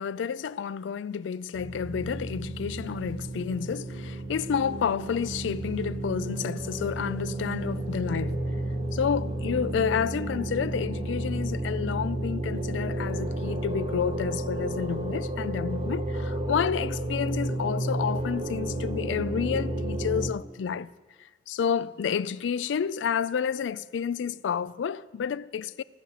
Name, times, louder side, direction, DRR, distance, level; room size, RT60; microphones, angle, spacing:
voice 1, 0.0-8.4 8.9-20.9 21.5-25.8, left 7 dB, 85° left, 0.4 m, -30 dB
sound 1, 1.5-20.3, right 1 dB, 35° right, 1.2 m, -32 dB
16.5 x 5.7 x 8.2 m
head